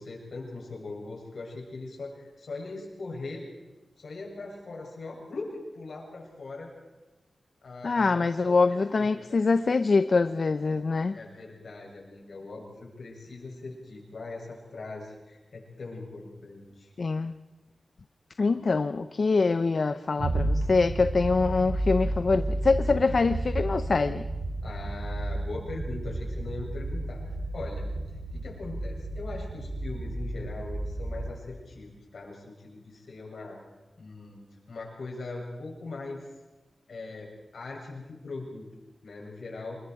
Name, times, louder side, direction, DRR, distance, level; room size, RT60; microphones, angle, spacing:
voice 1, 0.0-3.5 4.0-6.7 7.6-9.4 11.1-16.9 24.6-27.9 28.3-33.6 34.0-36.3 36.9-38.7 39.0-39.8, left 3 dB, 70° left, -2 dB, 7.7 m, -40 dB
voice 2, 7.8-11.2 17.0-17.3 18.4-24.2, left 4 dB, 55° left, 11 dB, 0.6 m, -24 dB
sound 1, 20.2-31.4, right 2 dB, 80° right, 4.2 m, -32 dB
27.5 x 22.0 x 4.8 m, 1.1 s
wide cardioid pair, 135°, 0 cm